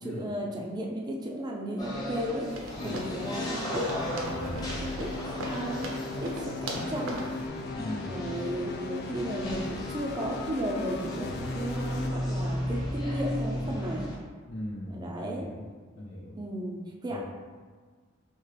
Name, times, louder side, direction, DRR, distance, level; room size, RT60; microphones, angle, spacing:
voice 1, 0.0-2.5 2.8-3.9 4.8-5.1 5.5-5.8 6.2-6.5 6.9-7.2 8.1-14.1 14.9-15.5 16.4-17.2, equal, 20° right, -1 dB, 0.4 m, -34 dB
sound 1, 1.8-14.2, equal, 20° left, 0.8 m, -35 dB
sound 2, 2.5-7.4, right 1 dB, 85° right, 0.7 m, -39 dB
sound 3, 2.8-12.1, left 3 dB, 55° left, 0.3 m, -38 dB
voice 2, 7.7-8.3 14.5-15.7 15.9-16.4 17.1-17.2, equal, 80° left, -8 dB, 0.7 m, -39 dB
4.4 x 2.8 x 3.3 m, 1.5 s
head